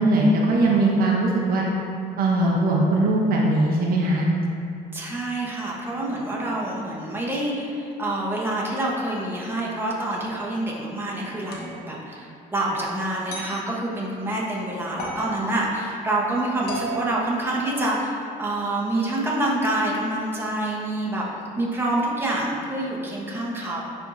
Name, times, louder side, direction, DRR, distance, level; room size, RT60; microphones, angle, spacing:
voice 1, 0.0-1.6 2.2-4.3, right 2 dB, 60° right, -3 dB, 1.0 m, -20 dB
voice 2, 4.9-21.3 21.6-23.8, right 1 dB, 15° right, -4 dB, 1.2 m, -27 dB
sound 1, 11.5-11.8 13.3-13.6 15.0-15.3 16.7-18.1, right 1 dB, 70° left, 1.3 m, -35 dB
10.5 x 3.6 x 2.7 m, 2.4 s
cardioid pair, 110°, 17 cm